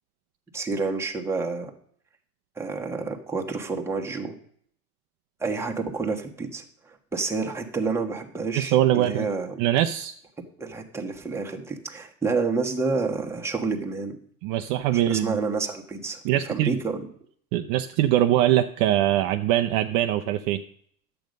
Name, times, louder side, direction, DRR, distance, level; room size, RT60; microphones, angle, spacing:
voice 1, 0.5-1.7 2.6-4.3 5.4-9.6 10.6-14.2 14.9-17.1, right 4 dB, 5° right, 1 dB, 1.2 m, -29 dB
voice 2, 8.5-9.3 9.6-10.1 14.4-15.4 16.2-16.8 17.5-20.6, right 13 dB, 40° right, 6 dB, 0.6 m, -22 dB
10.5 x 7.9 x 5.2 m, 0.62 s
supercardioid pair, 130°, 45 cm